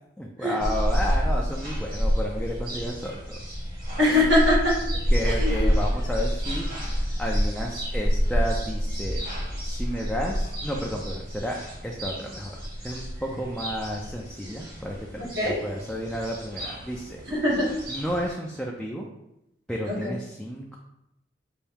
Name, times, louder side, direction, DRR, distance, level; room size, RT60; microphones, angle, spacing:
voice 1, 0.2-3.5 5.1-9.2 9.6-11.6 11.8-12.6 12.8-17.2 17.9-19.1 19.7-20.8, equal, 5° left, -2 dB, 0.4 m, -32 dB
sound 1, 0.6-18.3, equal, 50° right, 1.6 m, -28 dB
voice 2, 4.0-4.8 5.3-5.5 15.4-15.6 17.3-17.7 19.9-20.1, left 1 dB, 75° right, -5 dB, 1.7 m, -22 dB
5.6 x 2.7 x 3.5 m, 0.87 s
head